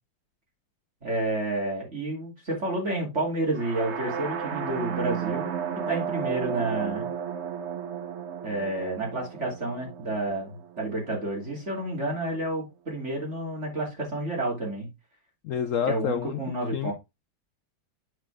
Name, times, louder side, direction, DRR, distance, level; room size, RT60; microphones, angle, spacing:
voice 1, 1.0-5.5 5.9-7.1 8.4-14.9 15.9-16.9, right 2 dB, 35° right, -1 dB, 3.3 m, -30 dB
sound 1, 3.5-11.4, right 8 dB, 55° right, 0.8 m, -33 dB
voice 2, 15.4-16.4 16.7-16.9, left 9 dB, 85° left, 10 dB, 0.7 m, -28 dB
8.8 x 4.9 x 3.4 m, 0.23 s
omnidirectional pair, 2.0 m